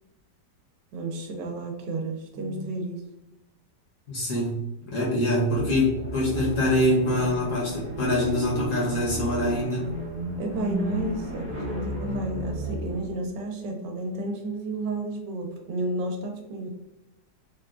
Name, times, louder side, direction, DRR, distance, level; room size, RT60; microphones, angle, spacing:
voice 1, 0.9-3.1 10.4-16.7, right 2 dB, 80° right, 3 dB, 1.2 m, -32 dB
voice 2, 4.1-4.6 4.9-9.8, left 1 dB, 55° left, -4 dB, 1.0 m, -24 dB
sound 1, 5.5-13.2, right 1 dB, 15° right, 0.5 m, -33 dB
3.6 x 2.2 x 2.4 m, 0.91 s
omnidirectional pair, 1.9 m